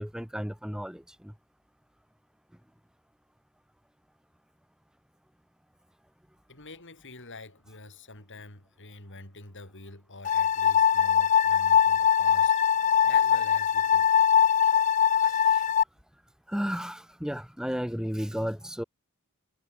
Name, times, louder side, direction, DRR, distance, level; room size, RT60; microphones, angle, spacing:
voice 1, 0.0-1.3 14.6-14.8 15.2-15.6 16.5-18.8, equal, 5° right, 1.7 m, -34 dB
voice 2, 6.5-12.5 13.0-14.2, left 3 dB, 60° left, 7.2 m, -46 dB
sound 1, 10.2-15.8, left 8 dB, 35° left, 0.4 m, -22 dB
head